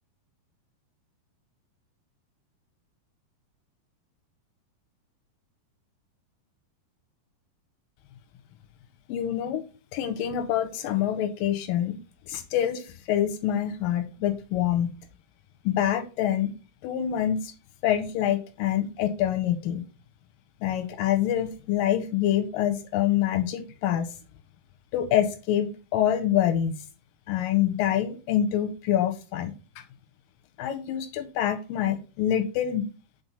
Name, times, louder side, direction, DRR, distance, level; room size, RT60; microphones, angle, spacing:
voice 1, 9.1-9.6 9.9-12.0 12.3-14.9 15.7-16.5 16.8-17.5 17.8-19.8 20.6-24.1 24.9-26.7 27.3-29.5 30.6-32.9, left 11 dB, 80° left, 7 dB, 2.1 m, -26 dB
5.9 x 4.2 x 5.4 m, 0.34 s
omnidirectional pair, 4.5 m